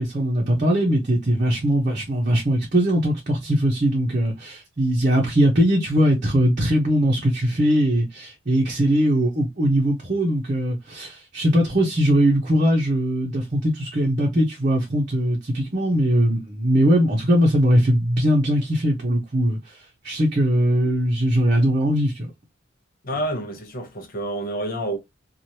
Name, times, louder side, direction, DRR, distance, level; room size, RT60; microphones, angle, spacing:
voice 1, 0.0-19.8 20.0-22.3, equal, 40° right, 0.8 m, -20 dB
voice 2, 23.0-25.0, right 1 dB, 45° left, 0.9 m, -28 dB
3.1 x 2.5 x 2.8 m
head